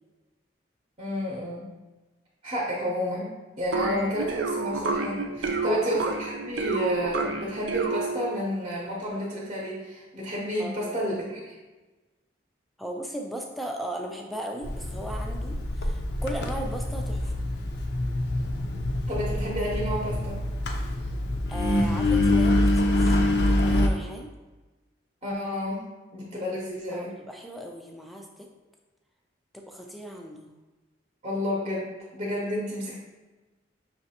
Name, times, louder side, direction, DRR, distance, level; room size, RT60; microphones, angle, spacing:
voice 1, 1.0-1.7 2.4-3.3 3.6-11.6 19.1-20.4 25.2-25.9 26.1-27.1 31.2-33.0, equal, 30° right, -4 dB, 0.8 m, -30 dB
sound 1, 3.7-8.5, right 3 dB, 85° right, 0.5 m, -29 dB
voice 2, 5.4-6.1 10.6-11.0 12.8-17.3 21.5-24.3 26.9-28.5 29.5-30.5, equal, ahead, 1 dB, 0.4 m, -37 dB
Engine, 14.6-23.9, left 1 dB, 60° left, 0.5 m, -25 dB
5.9 x 3.1 x 2.8 m, 1.2 s
head